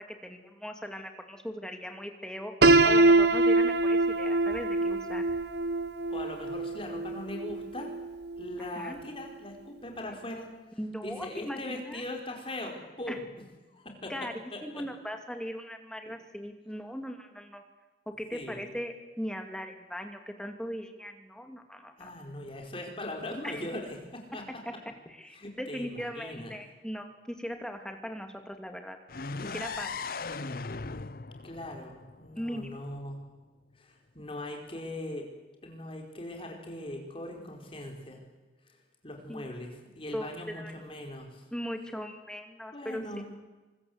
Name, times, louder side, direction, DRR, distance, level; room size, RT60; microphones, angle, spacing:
voice 1, 0.1-5.2 8.8-9.0 10.8-12.0 13.1-13.2 14.1-14.3 14.6-17.6 18.1-22.1 23.4-23.7 24.7-29.0 29.4-30.0 32.4-32.7 39.3-39.5 40.1-40.7 41.5-43.0, equal, 5° left, 5 dB, 2.4 m, -39 dB
Piano, 2.6-8.5, right 2 dB, 70° right, 1.1 m, -24 dB
voice 2, 6.1-7.9 8.4-13.2 13.7-14.8 18.3-18.6 22.0-24.4 25.3-26.5 31.4-33.2 33.7-35.3 35.6-38.2 38.6-41.5 42.7-43.2, left 1 dB, 30° left, 2 dB, 4.8 m, -40 dB
sound 1, 29.1-32.9, left 4 dB, 55° left, 0.7 m, -38 dB
25.0 x 22.5 x 8.1 m, 1.2 s
head